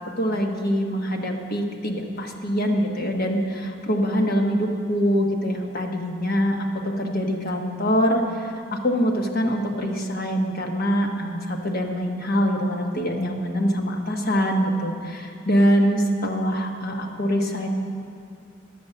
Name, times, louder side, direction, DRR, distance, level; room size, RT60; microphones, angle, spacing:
voice 1, 0.2-17.7, equal, 50° left, 2 dB, 1.2 m, -24 dB
11.5 x 7.8 x 6.8 m, 2.4 s
head